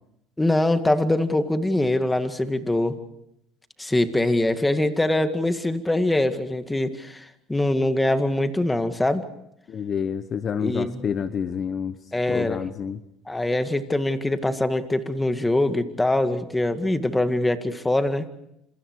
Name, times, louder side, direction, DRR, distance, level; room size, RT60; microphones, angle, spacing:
voice 1, 0.4-3.0 3.8-9.2 10.6-11.0 12.1-12.6 13.3-18.3, left 1 dB, 10° left, 9 dB, 2.0 m, -23 dB
voice 2, 9.7-12.0 12.3-13.0, left 7 dB, 45° left, 11 dB, 1.2 m, -28 dB
28.5 x 27.0 x 4.8 m, 0.79 s
supercardioid pair, 105°, 0 cm